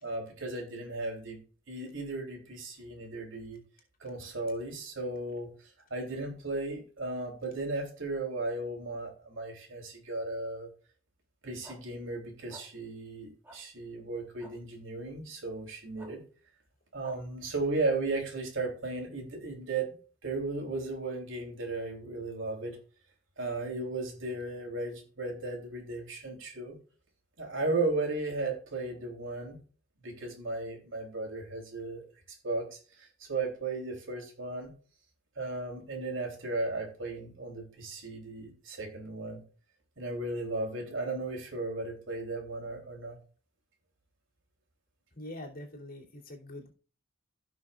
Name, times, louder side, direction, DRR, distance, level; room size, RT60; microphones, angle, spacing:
voice 1, 0.0-1.4 1.7-3.6 4.0-5.5 5.9-10.7 11.4-16.2 16.9-19.9 20.2-22.8 23.4-26.8 27.4-29.6 30.0-32.1 32.4-34.7 35.4-39.4 40.0-43.2, right 2 dB, 85° right, 2 dB, 3.3 m, -35 dB
Barking Dog, 11.6-11.8 12.5-12.6 13.4-13.6 14.4-14.5 16.0-16.1 17.0-17.2, right 1 dB, 10° right, 2.9 m, -49 dB
voice 2, 45.1-46.7, left 1 dB, 50° left, -2 dB, 2.9 m, -44 dB
16.0 x 6.2 x 2.4 m, 0.38 s
head